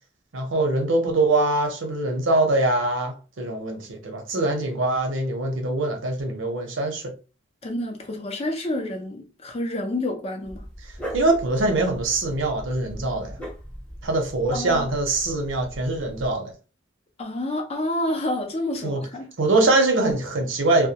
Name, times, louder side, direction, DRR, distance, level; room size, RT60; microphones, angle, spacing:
voice 1, 0.3-7.1 11.1-13.4 14.0-16.5 18.8-19.0 19.4-20.9, right 2 dB, 80° right, 0.7 m, -23 dB
voice 2, 7.6-10.6 14.5-14.9 17.2-19.2, left 1 dB, 35° left, 0.5 m, -28 dB
Dog, 10.4-16.3, equal, 5° left, 0.8 m, -39 dB
2.2 x 2.1 x 2.7 m
head